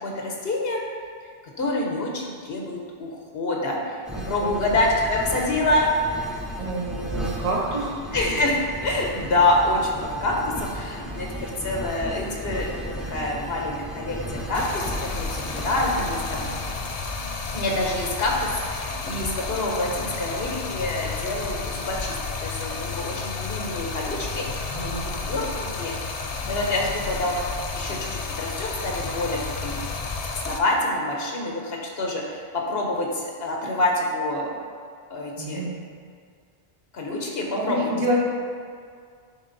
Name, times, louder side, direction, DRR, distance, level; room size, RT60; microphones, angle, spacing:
voice 1, 0.0-0.8 1.6-5.9 8.1-14.2 14.5-16.4 17.5-22.2 22.4-26.0 26.2-27.4 27.8-29.8 30.3-34.5 35.1-35.7 36.9-37.9, left 2 dB, 70° left, -1 dB, 1.3 m, -27 dB
sound 1, 4.0-16.7, equal, ahead, 0.7 m, -35 dB
voice 2, 4.2-4.5 6.6-8.0 24.7-25.1 35.4-35.8 37.6-38.2, right 1 dB, 35° right, -4 dB, 1.1 m, -28 dB
Stream, 14.5-30.6, left 4 dB, 45° left, 0.5 m, -31 dB
10.0 x 3.5 x 4.0 m, 2.1 s
omnidirectional pair, 1.1 m